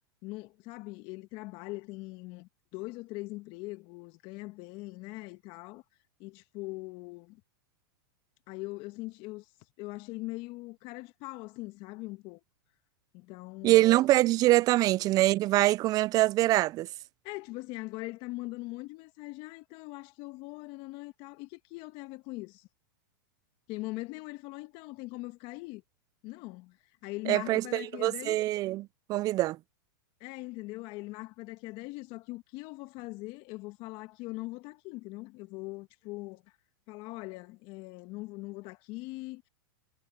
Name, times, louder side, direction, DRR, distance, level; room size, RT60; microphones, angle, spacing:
voice 1, 0.2-5.8 6.2-7.4 8.5-9.5 9.8-12.4 13.1-13.9 17.2-22.7 23.7-25.8 26.2-28.4 30.2-36.6 36.9-39.5, left 22 dB, 45° left, 1.6 m, -41 dB
voice 2, 13.6-16.9 27.3-29.6, right 16 dB, 35° right, 0.4 m, -24 dB
hypercardioid pair, 115°, 12 cm